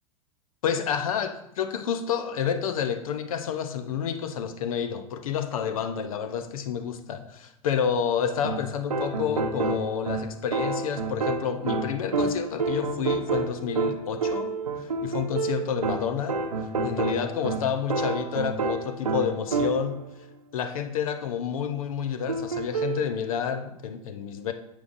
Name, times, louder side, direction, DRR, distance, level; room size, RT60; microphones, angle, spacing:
voice 1, 0.6-16.4 16.8-20.0 20.5-24.5, left 7 dB, 70° left, 0.7 m, -29 dB
sound 1, 8.4-20.1 22.3-23.1, right 3 dB, 85° right, 0.7 m, -29 dB
9.3 x 6.4 x 2.6 m
figure-of-eight pair, 95°, 19 cm